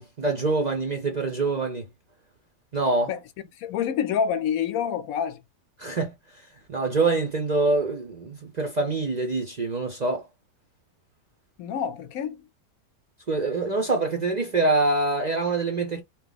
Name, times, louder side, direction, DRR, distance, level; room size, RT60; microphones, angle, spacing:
voice 1, 0.0-1.9 2.7-3.1 5.8-6.1 6.7-10.3 13.3-16.0, right 3 dB, 40° right, 0.6 m, -25 dB
voice 2, 3.6-5.4 11.6-12.4, left 8 dB, 75° left, 1.0 m, -27 dB
4.0 x 2.3 x 4.0 m
omnidirectional pair, 1.6 m